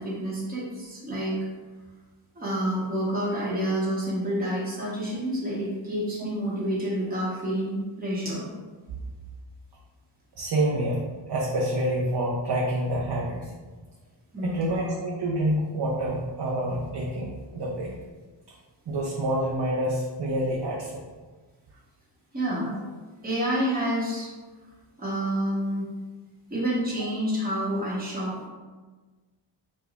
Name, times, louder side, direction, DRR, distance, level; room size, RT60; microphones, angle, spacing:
voice 1, 0.0-1.4 2.3-8.5 14.3-14.8 22.3-22.8 23.2-24.3 25.0-25.8 26.5-28.5, right 1 dB, 20° right, -6 dB, 1.0 m, -28 dB
voice 2, 10.3-13.5 14.4-17.9 18.9-21.0, right 1 dB, 55° right, -4 dB, 0.6 m, -27 dB
4.9 x 2.2 x 2.4 m, 1.3 s
wide cardioid pair, 75°, 49 cm